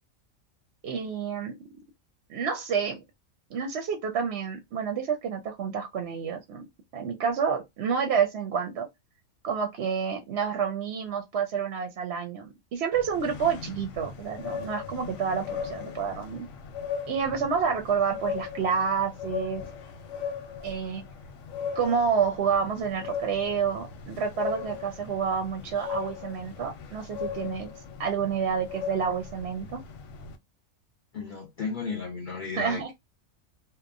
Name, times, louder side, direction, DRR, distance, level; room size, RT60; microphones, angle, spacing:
voice 1, 0.8-1.6 2.3-3.0 3.5-6.7 6.9-8.9 9.4-16.5 17.1-19.6 20.6-21.0 21.7-27.7 28.0-29.8 32.5-32.9, right 6 dB, 65° right, 0.8 m, -29 dB
sound 1, 12.9-30.4, left 7 dB, 90° left, 1.0 m, -38 dB
voice 2, 31.1-32.9, left 5 dB, 50° left, 0.6 m, -34 dB
2.9 x 2.0 x 2.4 m
omnidirectional pair, 1.4 m